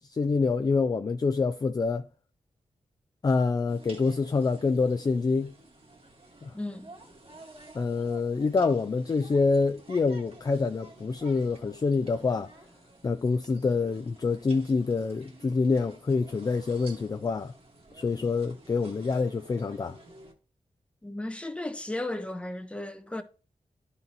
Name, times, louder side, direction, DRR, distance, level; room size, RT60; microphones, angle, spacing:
voice 1, 0.1-2.1 3.2-5.5 6.4-6.5 7.7-12.5 13.0-17.5 18.0-19.9, left 4 dB, 30° left, 0.3 m, -26 dB
sound 1, 3.7-20.3, right 2 dB, 45° right, 1.5 m, -52 dB
voice 2, 6.5-6.9 21.0-23.2, left 1 dB, 10° left, 0.7 m, -35 dB
12.0 x 4.1 x 2.8 m
wide cardioid pair, 115°, 13 cm